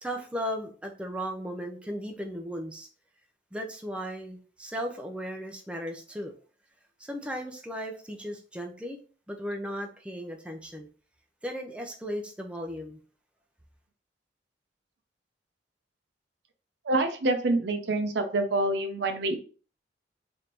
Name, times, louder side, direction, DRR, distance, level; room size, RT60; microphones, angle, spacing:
voice 1, 0.0-2.9 3.5-6.3 7.0-9.0 9.3-10.9 11.4-13.0, equal, 5° right, 3 dB, 0.5 m, -36 dB
voice 2, 16.9-19.4, right 2 dB, 65° right, 7 dB, 0.6 m, -26 dB
3.5 x 2.6 x 4.3 m, 0.39 s
head